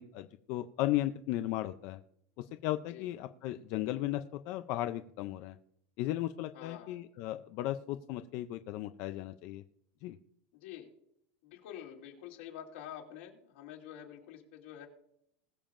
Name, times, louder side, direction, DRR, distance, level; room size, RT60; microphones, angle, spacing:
voice 1, 0.0-2.0 2.4-5.6 6.0-9.6 10.0-10.2, left 14 dB, 35° left, 9 dB, 0.4 m, -36 dB
voice 2, 6.5-7.0 10.5-10.9 11.4-14.9, left 10 dB, 65° left, 1 dB, 2.7 m, -47 dB
21.0 x 7.1 x 2.5 m, 0.73 s
supercardioid pair, 180°, 7 cm